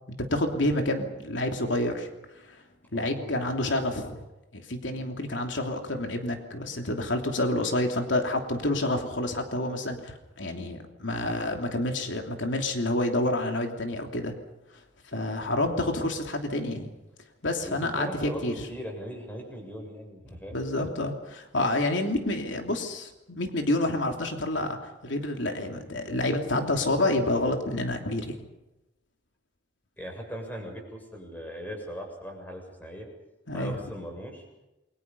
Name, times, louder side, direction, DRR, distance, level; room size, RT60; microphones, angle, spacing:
voice 1, 0.2-2.1 2.5-2.6 2.9-4.2 4.5-14.3 15.1-16.9 17.4-18.5 20.5-24.8 25.0-28.4 33.5-33.7, left 1 dB, 80° left, 3 dB, 3.1 m, -28 dB
voice 2, 2.9-3.6 17.6-20.6 30.0-33.1 33.5-34.5, equal, 10° left, 2 dB, 7.0 m, -39 dB
29.0 x 24.0 x 5.6 m, 0.97 s
head